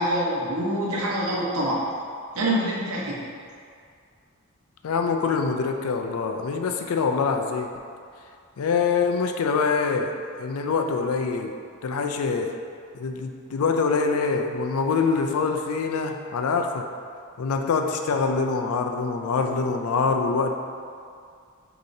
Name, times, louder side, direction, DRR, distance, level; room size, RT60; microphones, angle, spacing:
voice 1, 0.0-1.8 2.3-3.3, right 1 dB, 85° right, -4 dB, 0.9 m, -25 dB
voice 2, 4.8-7.7 8.6-10.1 10.4-11.5 11.8-12.5 12.9-16.9 17.4-20.6, left 5 dB, 90° left, 4 dB, 0.4 m, -24 dB
6.3 x 2.9 x 2.6 m, 2.2 s
head